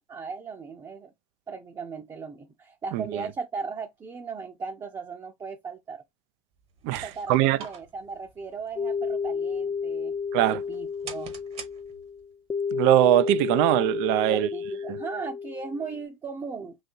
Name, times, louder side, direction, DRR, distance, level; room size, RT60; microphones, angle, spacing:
voice 1, 0.1-1.1 1.5-6.0 7.0-10.2 10.5-11.3 14.3-16.8, right 5 dB, 20° right, 0.7 m, -37 dB
sound 1, 6.6-12.3, right 6 dB, 40° right, 1.0 m, -47 dB
voice 2, 6.8-7.6 10.3-10.6 12.7-14.5, right 14 dB, 55° right, 0.4 m, -22 dB
sound 2, 8.8-16.0, left 5 dB, 15° left, 0.6 m, -31 dB
3.9 x 2.7 x 2.6 m
hypercardioid pair, 90°, 16 cm